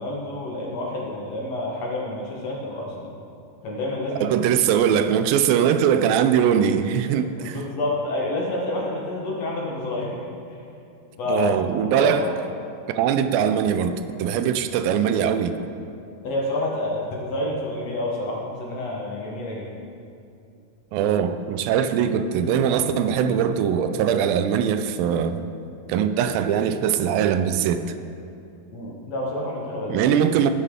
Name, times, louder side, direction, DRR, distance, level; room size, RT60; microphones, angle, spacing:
voice 1, 0.0-3.2 3.6-4.3 7.4-10.2 11.2-11.6 11.9-12.3 16.2-19.7 28.7-30.1, left 1 dB, 60° left, -3 dB, 1.8 m, -28 dB
voice 2, 4.2-7.6 11.3-12.2 12.9-15.5 20.9-25.4 25.9-27.9 29.9-30.5, right 8 dB, 85° right, 9 dB, 2.3 m, -21 dB
18.5 x 6.7 x 3.7 m, 2.6 s
omnidirectional pair, 4.0 m